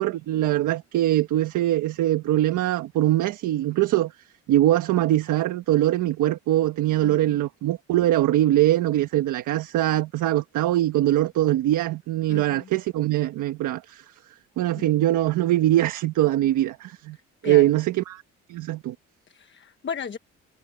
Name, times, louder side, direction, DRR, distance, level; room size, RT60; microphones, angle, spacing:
voice 1, 0.0-4.1 4.5-14.0 14.6-17.2 17.4-18.2 18.5-18.9, right 14 dB, 85° right, 1.3 m, -22 dB
voice 2, 7.0-7.4 12.3-12.7 14.8-14.9 17.4-17.7 19.3-20.2, left 7 dB, 40° left, 1.1 m, -36 dB
cardioid pair, 90°, 30 cm